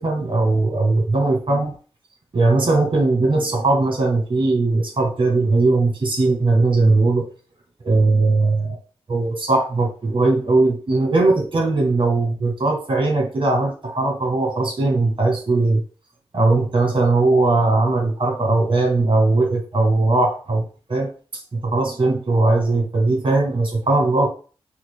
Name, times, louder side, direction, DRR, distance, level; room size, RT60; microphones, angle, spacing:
voice 1, 0.0-1.7 2.3-7.3 7.8-8.8 9.1-15.8 16.3-24.3, right 2 dB, 55° right, 0 dB, 1.6 m, -19 dB
5.9 x 2.6 x 2.2 m, 0.38 s
cardioid pair, 45°, 11 cm